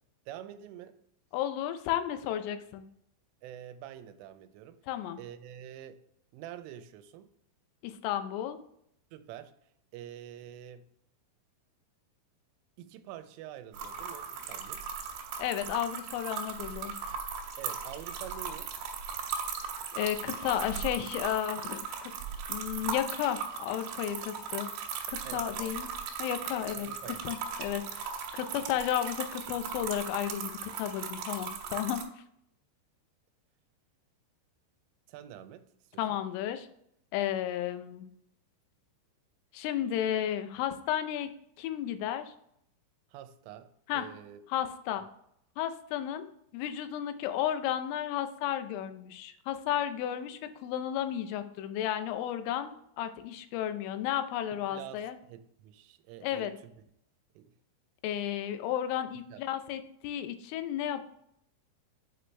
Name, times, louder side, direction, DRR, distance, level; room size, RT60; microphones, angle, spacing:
voice 1, 0.3-1.0 3.4-4.8 5.2-6.0 6.3-7.3 9.1-9.5 9.9-10.9 12.8-14.9 17.6-18.7 25.2-25.8 26.7-27.2 27.8-27.9 35.1-35.6 35.9-36.2 43.1-44.4 54.7-56.7 57.4-57.5 59.3-59.4, right 11 dB, 90° right, 10 dB, 3.1 m, -46 dB
voice 2, 1.3-2.8 4.9-5.2 7.8-8.6 15.4-16.9 19.9-22.1 22.5-24.7 25.1-25.9 26.2-28.1 28.3-32.1 36.0-36.7 37.1-38.1 39.5-42.3 43.9-44.1 44.5-45.0 45.6-52.7 53.0-55.2 56.2-56.5 58.0-61.1, left 11 dB, 90° left, 9 dB, 3.3 m, -33 dB
sound 1, 13.7-32.0, right 6 dB, 75° right, 2.7 m, -38 dB
8.1 x 5.1 x 3.3 m, 0.74 s
omnidirectional pair, 5.6 m